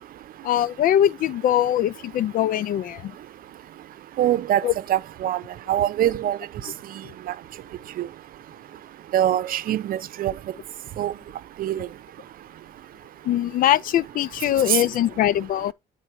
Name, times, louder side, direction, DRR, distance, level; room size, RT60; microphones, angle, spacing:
voice 1, 0.4-3.1 4.6-4.7 6.6-6.7 13.2-15.7, left 11 dB, 55° left, 0.4 m, -22 dB
voice 2, 4.2-4.6 4.9-5.4 5.7-6.4 8.0-8.1 9.1-10.3 11.0-11.1 11.6-11.9 14.7-14.8, right 12 dB, 60° right, 0.7 m, -23 dB
9.6 x 4.0 x 4.5 m
cardioid pair, 110°, 17 cm